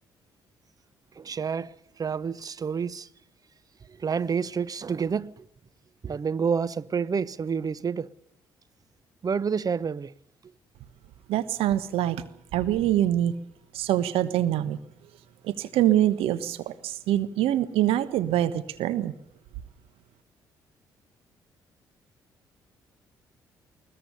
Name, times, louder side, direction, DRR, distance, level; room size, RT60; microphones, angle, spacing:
voice 1, 1.2-3.1 3.9-5.5 6.0-8.1 9.2-10.1, right 6 dB, 35° right, 0.8 m, -29 dB
voice 2, 11.3-12.2 12.5-13.3 13.7-14.8 15.4-19.1, right 12 dB, 65° right, 1.3 m, -24 dB
21.5 x 19.5 x 6.9 m
hypercardioid pair, 45°, 10 cm